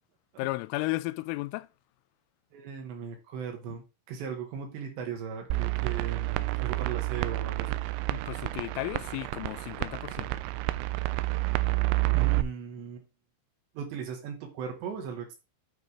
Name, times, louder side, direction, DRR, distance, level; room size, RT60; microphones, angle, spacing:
voice 1, 0.4-1.7 8.1-10.4, left 20 dB, 85° left, 3.1 m, -34 dB
voice 2, 2.5-7.8 12.1-13.1 13.8-15.4, right 6 dB, 70° right, 3.5 m, -38 dB
sound 1, 5.5-12.4, right 20 dB, 85° right, 2.6 m, -29 dB
9.2 x 3.7 x 4.9 m
omnidirectional pair, 5.7 m